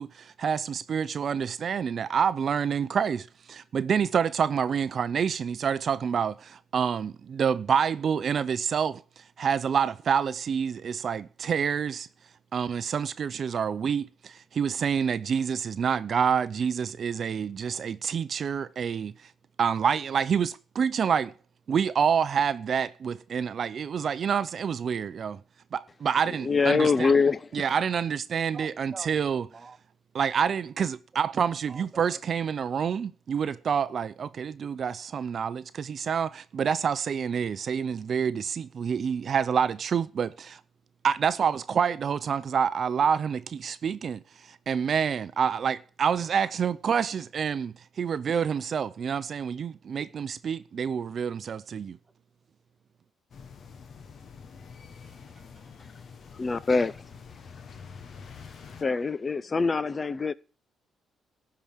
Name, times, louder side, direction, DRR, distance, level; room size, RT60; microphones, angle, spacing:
voice 1, 0.0-12.1 12.5-19.1 19.6-21.3 21.7-25.4 25.7-27.1 27.5-29.5 30.1-40.6 41.0-52.0, right 7 dB, 50° right, 0.6 m, -27 dB
voice 2, 26.4-27.7 56.4-57.0 58.8-60.3, left 4 dB, 30° left, 0.5 m, -24 dB
voice 3, 28.5-29.8 31.7-32.2 55.0-55.7, right 4 dB, 30° right, 1.2 m, -47 dB
sound 1, 53.3-58.8, left 6 dB, 55° left, 1.3 m, -46 dB
12.5 x 4.9 x 8.9 m
cardioid pair, 90°, 0 cm